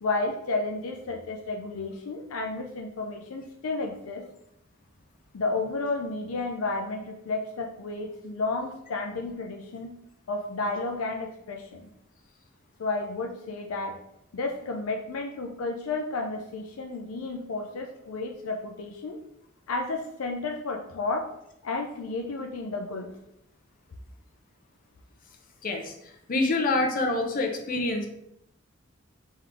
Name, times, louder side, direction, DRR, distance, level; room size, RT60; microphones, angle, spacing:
voice 1, 0.0-4.2 5.3-10.0 10.3-11.9 12.8-14.0 14.3-19.2 19.7-21.3 21.6-23.2, left 3 dB, 85° left, 2 dB, 0.5 m, -32 dB
voice 2, 25.6-25.9 26.3-28.1, left 2 dB, 40° left, 2 dB, 0.6 m, -26 dB
3.7 x 3.1 x 3.4 m, 0.77 s
head